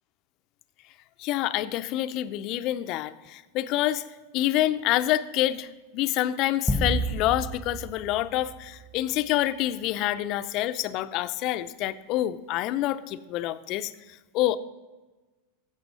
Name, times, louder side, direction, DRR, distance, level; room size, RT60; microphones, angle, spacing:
voice 1, 1.2-4.0 4.3-13.9 14.3-14.6, left 14 dB, 50° left, 12 dB, 0.6 m, -27 dB
sound 1, 6.7-9.3, right 1 dB, ahead, 1.2 m, -31 dB
15.5 x 7.0 x 5.4 m, 1.2 s
hypercardioid pair, 90°, 0 cm